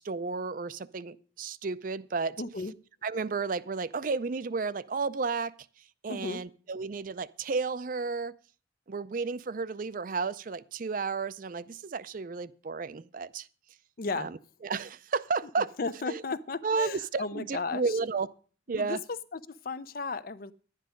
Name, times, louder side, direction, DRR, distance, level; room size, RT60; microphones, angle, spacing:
voice 1, 0.0-2.4 3.0-5.5 6.0-8.3 8.9-13.5 14.2-14.4 14.6-15.7 16.0-16.2 16.6-18.3 18.7-19.0, right 4 dB, 45° right, 0.4 m, -32 dB
voice 2, 2.4-2.7 6.1-6.4 14.0-14.3 15.8-18.0 18.7-19.0 19.3-20.5, left 3 dB, 50° left, 0.6 m, -35 dB
11.5 x 9.9 x 5.1 m
head